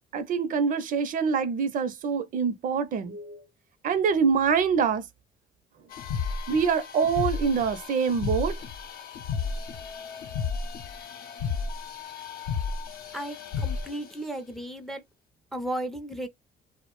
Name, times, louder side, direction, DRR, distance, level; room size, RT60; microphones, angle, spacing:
voice 1, 0.1-3.4 3.8-5.1 6.5-8.6, right 6 dB, 55° right, 0.5 m, -25 dB
sound 1, 5.9-14.1, left 5 dB, 65° left, 0.6 m, -33 dB
voice 2, 13.1-15.0 15.5-16.3, right 1 dB, ahead, 0.4 m, -34 dB
2.4 x 2.0 x 2.9 m
cardioid pair, 110°, 17 cm